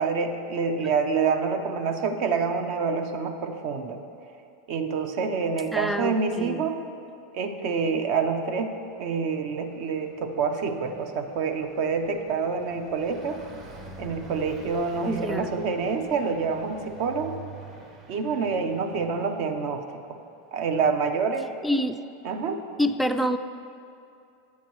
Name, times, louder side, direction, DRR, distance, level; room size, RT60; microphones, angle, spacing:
voice 1, 0.0-4.0 4.7-6.8 7.3-8.7 9.0-13.4 14.0-17.3 18.1-19.8 20.1-20.2 20.5-21.5 22.2-22.6, right 5 dB, 55° right, 6 dB, 0.7 m, -27 dB
voice 2, 5.7-6.6 15.0-15.5 21.6-22.0 22.8-23.4, equal, ahead, 7 dB, 0.3 m, -26 dB
Car passing by, 8.9-20.0, right 2 dB, 40° right, 1.2 m, -47 dB
9.4 x 8.6 x 3.1 m, 2.6 s
hypercardioid pair, 115°, 0 cm